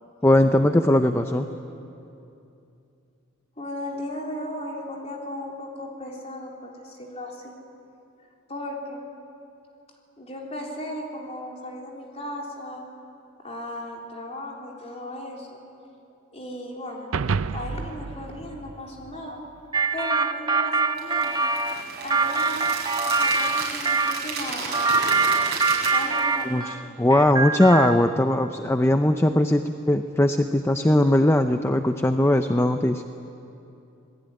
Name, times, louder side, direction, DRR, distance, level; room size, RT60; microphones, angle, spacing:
voice 1, 0.2-1.4 26.4-33.0, left 1 dB, 10° left, 7 dB, 0.6 m, -20 dB
voice 2, 3.6-7.6 8.5-9.0 10.2-12.8 13.4-15.6 16.3-19.4 19.9-21.5 22.0-22.7 23.1-25.0 25.7-26.9, left 1 dB, 30° left, -1 dB, 3.8 m, -36 dB
sound 1, 17.1-19.6, right 5 dB, 85° right, 0.6 m, -30 dB
sound 2, 19.7-24.2 24.7-26.8 27.1-28.1, right 4 dB, 20° right, 0.9 m, -24 dB
sound 3, 21.0-26.4, right 4 dB, 50° right, 6.8 m, -33 dB
27.0 x 19.5 x 9.8 m, 2.8 s
head